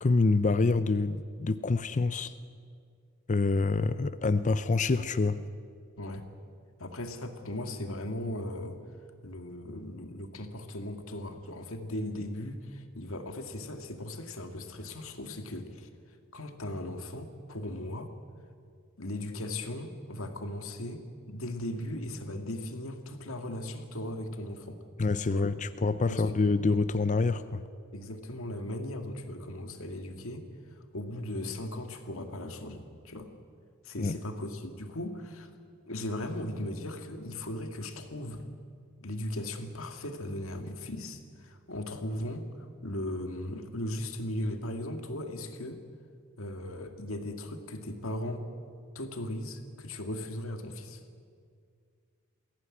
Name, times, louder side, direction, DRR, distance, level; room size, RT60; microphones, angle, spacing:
voice 1, 0.0-2.3 3.3-5.4 25.0-27.6 34.0-34.2, left 3 dB, 35° left, 13 dB, 0.6 m, -26 dB
voice 2, 6.8-8.8 9.2-15.9 16.3-18.1 19.0-21.0 21.3-24.8 25.3-25.5 26.1-26.2 27.9-30.5 30.9-33.3 33.8-35.5 35.9-38.4 39.0-45.8 46.4-48.5 49.0-51.0, left 1 dB, 70° left, 6 dB, 2.1 m, -37 dB
21.0 x 16.5 x 9.8 m, 2.2 s
head